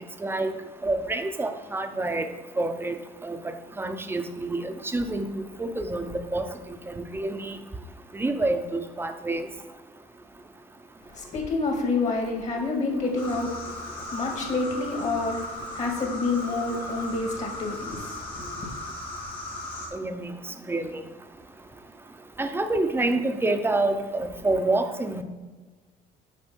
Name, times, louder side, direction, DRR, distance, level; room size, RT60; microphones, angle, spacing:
voice 1, 0.2-0.5 0.8-2.3 2.6-3.0 3.2-6.5 6.9-7.6 8.1-9.5 19.9-20.3 20.7-21.0 22.4-25.2, right 2 dB, 15° right, 7 dB, 0.7 m, -27 dB
voice 2, 11.0-18.7, left 3 dB, 45° left, 1 dB, 2.2 m, -29 dB
cicada crickets, 13.1-19.9, left 2 dB, 85° left, 2.5 m, -37 dB
6.5 x 5.3 x 6.1 m, 1.3 s
cardioid pair, 110°, 17 cm